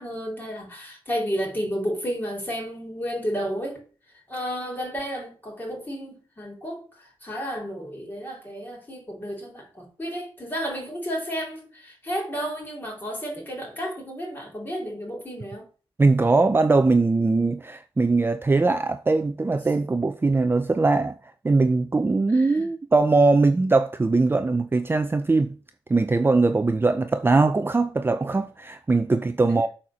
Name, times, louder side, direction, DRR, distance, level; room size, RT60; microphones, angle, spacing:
voice 1, 0.0-3.8 4.3-15.7 22.3-22.7 29.4-29.6, equal, 20° left, 4.3 m, -32 dB
voice 2, 16.0-21.1 21.4-25.5 25.9-29.7, right 3 dB, 25° right, 0.5 m, -21 dB
8.1 x 4.4 x 6.3 m
cardioid pair, 85°, 10 cm